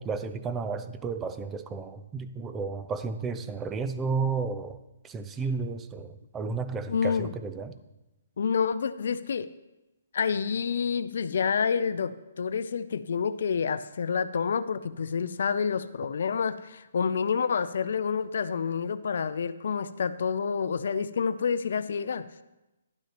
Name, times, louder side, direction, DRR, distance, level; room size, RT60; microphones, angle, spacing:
voice 1, 0.0-4.8 5.0-7.8, right 4 dB, 15° right, 10 dB, 0.4 m, -32 dB
voice 2, 6.9-7.3 8.4-9.5 10.1-22.3, left 6 dB, 70° left, 14 dB, 0.4 m, -28 dB
11.5 x 9.0 x 2.9 m, 0.99 s
hypercardioid pair, 150°, 0 cm